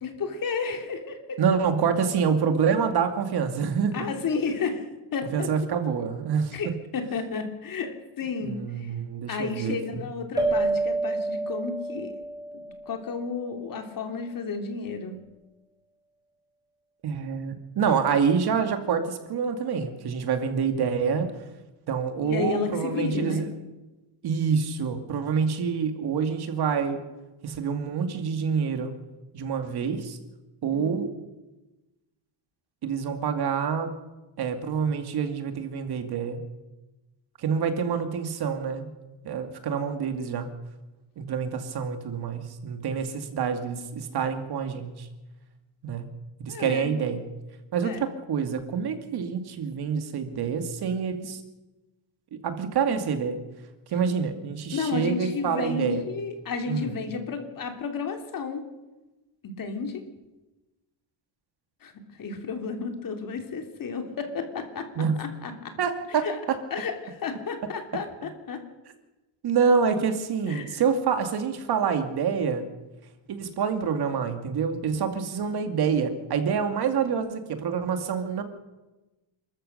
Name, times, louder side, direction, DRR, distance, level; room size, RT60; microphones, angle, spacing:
voice 1, 0.0-1.4 3.9-4.8 5.1-5.5 6.5-8.9 9.3-12.1 12.5-15.2 22.2-23.4 30.7-31.0 46.5-46.9 47.8-48.0 54.7-58.6 59.4-60.0 61.8-64.9 65.2-65.8 66.1-66.4 66.7-68.6 70.5-70.8, left 5 dB, 45° left, 5 dB, 3.1 m, -32 dB
voice 2, 1.4-3.9 5.3-6.7 8.4-10.0 17.0-21.3 21.9-23.5 24.2-27.0 27.4-28.9 29.3-30.2 30.6-31.1 32.8-33.9 34.4-36.4 37.4-38.9 39.2-40.5 41.2-45.1 45.8-46.1 46.4-47.2 47.7-51.4 52.3-53.4 53.9-56.0 56.7-56.9 65.0-65.1 65.8-66.6 69.4-72.6 73.3-78.4, right 6 dB, 55° right, 7 dB, 2.5 m, -27 dB
sound 1, 10.4-13.4, right 2 dB, 10° right, 5.3 m, -28 dB
29.5 x 13.5 x 6.7 m, 1.1 s
cardioid pair, 145°, 46 cm